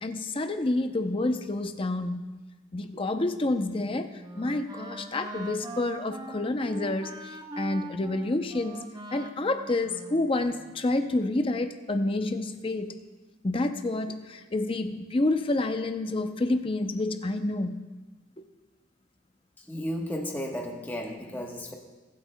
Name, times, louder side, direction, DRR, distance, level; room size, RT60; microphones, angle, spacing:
voice 1, 0.0-2.3 2.7-4.1 4.4-7.1 7.6-8.8 9.1-12.9 13.4-17.7, left 2 dB, 25° left, 8 dB, 0.5 m, -28 dB
Wind instrument woodwind instrument, 3.7-10.8, right 2 dB, 20° right, 0.6 m, -42 dB
voice 2, 19.7-21.7, equal, 10° left, 0 dB, 1.1 m, -33 dB
22.5 x 8.1 x 2.2 m, 1.2 s
head